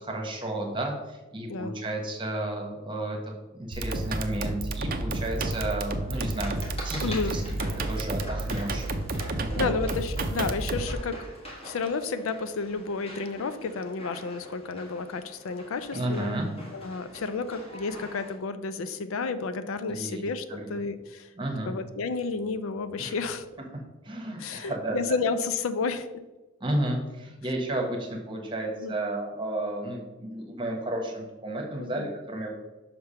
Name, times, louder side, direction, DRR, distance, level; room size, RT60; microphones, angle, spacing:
voice 1, 0.1-3.2 3.6-7.4 7.9-8.8 9.4-9.7 15.9-16.5 19.9-20.2 20.5-20.7 21.4-21.7 23.0-23.1 24.0-25.0 26.6-32.5, right 1 dB, 25° right, 1 dB, 1.2 m, -32 dB
sound 1, 3.7-10.9, right 2 dB, 45° right, 0.5 m, -31 dB
sound 2, 5.3-18.4, equal, 30° left, 1.3 m, -44 dB
voice 2, 7.0-7.4 9.6-11.3 11.6-16.4 16.7-21.3 21.7-23.6 24.4-26.2 28.8-29.0 31.8-32.1, left 4 dB, 75° left, 11 dB, 0.4 m, -31 dB
5.8 x 3.4 x 5.5 m, 1.1 s
head